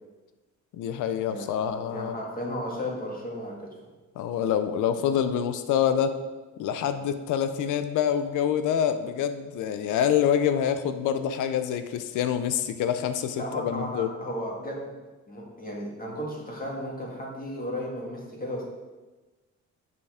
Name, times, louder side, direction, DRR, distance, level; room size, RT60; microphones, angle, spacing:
voice 1, 0.7-2.2 4.2-6.2 6.6-14.1, left 9 dB, 90° left, 10 dB, 0.7 m, -26 dB
voice 2, 1.9-3.7 13.4-14.9 15.3-18.6, equal, 30° left, -2 dB, 2.1 m, -34 dB
6.8 x 5.5 x 5.0 m, 1.2 s
cardioid pair, 90°, 30 cm